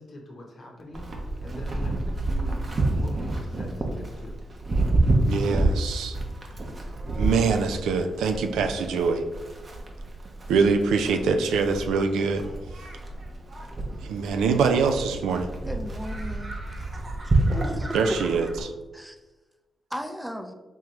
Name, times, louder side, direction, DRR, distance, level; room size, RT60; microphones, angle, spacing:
voice 1, 0.0-2.6 3.0-4.4, left 1 dB, 60° left, -1 dB, 0.8 m, -43 dB
Livestock farm animals working animals, 0.9-18.6, right 2 dB, 45° right, 0.8 m, -29 dB
voice 2, 5.3-6.2 7.2-9.2 10.5-12.4 14.0-15.5 17.9-18.7, right 5 dB, 85° right, 6 dB, 0.3 m, -24 dB
voice 3, 15.7-16.6 17.2-18.0 18.9-19.2 19.9-20.5, equal, 5° right, 5 dB, 0.5 m, -36 dB
3.6 x 3.1 x 3.0 m, 1.2 s
supercardioid pair, 50°, 0 cm